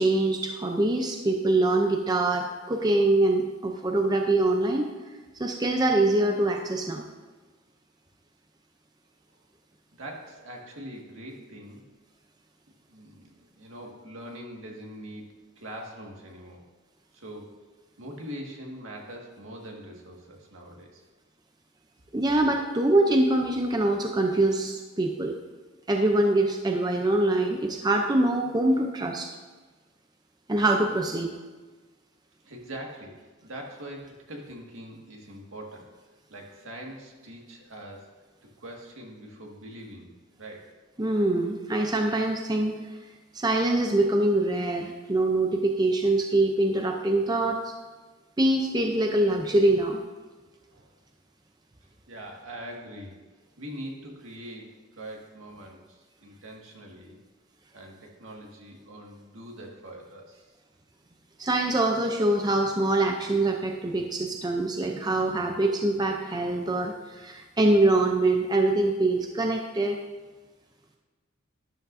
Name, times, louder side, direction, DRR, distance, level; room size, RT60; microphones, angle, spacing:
voice 1, 0.0-4.9 5.4-7.0 22.1-25.4 25.9-29.3 30.5-31.3 41.0-42.8 43.3-47.7 48.4-50.0 61.4-70.0, right 2 dB, 20° right, 3 dB, 0.5 m, -24 dB
voice 2, 9.9-11.9 12.9-13.3 13.5-15.3 15.6-16.6 17.1-17.5 18.0-21.0 32.4-35.9 36.3-38.1 38.6-40.1 40.4-40.7 50.7-50.9 52.1-53.1 53.6-57.2 57.7-60.5, right 1 dB, 70° right, 0 dB, 1.9 m, -42 dB
12.5 x 11.0 x 2.6 m, 1.4 s
head